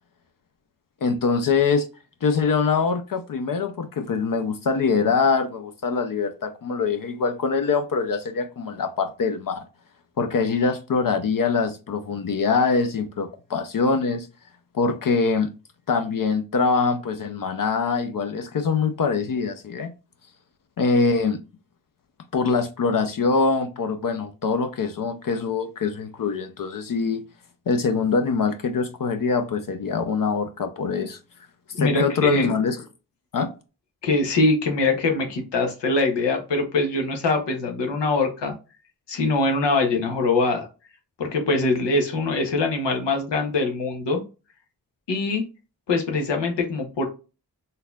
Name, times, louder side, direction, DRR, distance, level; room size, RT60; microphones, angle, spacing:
voice 1, 1.0-1.9 2.2-9.7 10.2-14.3 14.7-15.5 15.9-19.9 20.8-21.4 22.3-27.2 27.7-31.2 31.8-32.8 33.3-33.5, left 4 dB, 55° left, 0.5 m, -23 dB
voice 2, 31.8-32.5 34.0-38.5 39.1-40.7 41.2-44.2 45.1-45.4 45.9-47.1, left 3 dB, 90° left, 0.9 m, -23 dB
3.9 x 2.7 x 2.3 m
cardioid pair, 55°, 42 cm